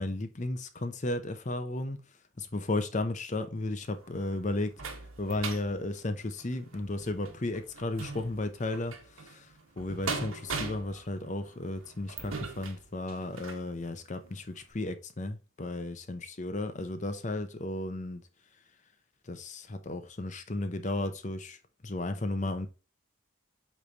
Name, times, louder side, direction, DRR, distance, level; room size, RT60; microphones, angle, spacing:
voice 1, 0.0-2.0 2.4-4.7 5.2-18.2 19.2-21.6 21.8-22.7, left 2 dB, 35° left, 0.7 m, -34 dB
sound 1, 3.8-13.7 14.2-14.3 14.7-14.8, right 4 dB, 80° right, 1.4 m, -41 dB
8.5 x 3.3 x 4.0 m
head